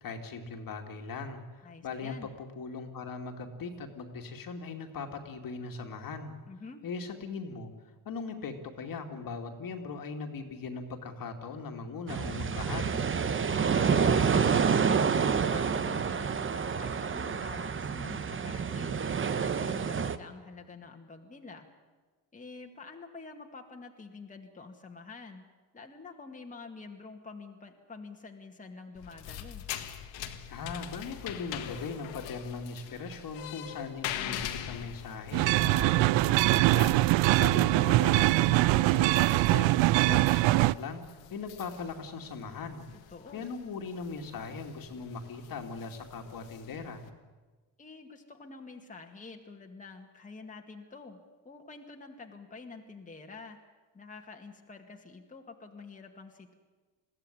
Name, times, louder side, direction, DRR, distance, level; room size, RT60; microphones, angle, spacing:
voice 1, 0.0-6.4 6.8-7.7 8.1-13.1 30.5-37.0 37.4-41.0 41.3-42.8 43.3-47.0, left 4 dB, 50° left, 4 dB, 2.4 m, -39 dB
voice 2, 1.6-2.3 6.5-6.8 13.7-19.0 19.4-21.7 22.3-25.5 25.7-29.7 37.5-38.1 43.1-43.5 47.8-51.2 51.4-53.6 53.9-56.5, left 4 dB, 15° left, 1 dB, 2.1 m, -47 dB
sound 1, 12.1-20.2, right 6 dB, 30° right, 1.0 m, -28 dB
sound 2, 29.0-47.1, left 11 dB, 85° left, 1.8 m, -44 dB
sound 3, 35.3-40.7, right 19 dB, 85° right, 0.6 m, -23 dB
21.5 x 15.5 x 9.9 m, 1.3 s
cardioid pair, 115°, 44 cm